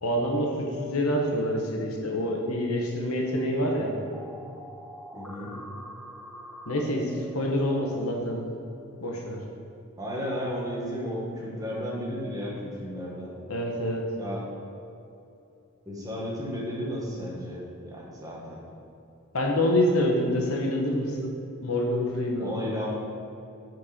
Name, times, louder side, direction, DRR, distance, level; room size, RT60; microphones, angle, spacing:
voice 1, 0.0-4.0 6.7-8.5 9.0-9.4 13.5-14.1 19.3-22.6, left 1 dB, 85° left, 0 dB, 1.2 m, -27 dB
sound 1, 4.1-8.0, equal, ahead, 0.4 m, -44 dB
voice 2, 5.1-5.5 10.0-13.3 14.2-14.5 15.9-18.6 22.4-23.0, equal, 15° right, -5 dB, 1.7 m, -33 dB
8.8 x 4.6 x 5.1 m, 2.7 s
head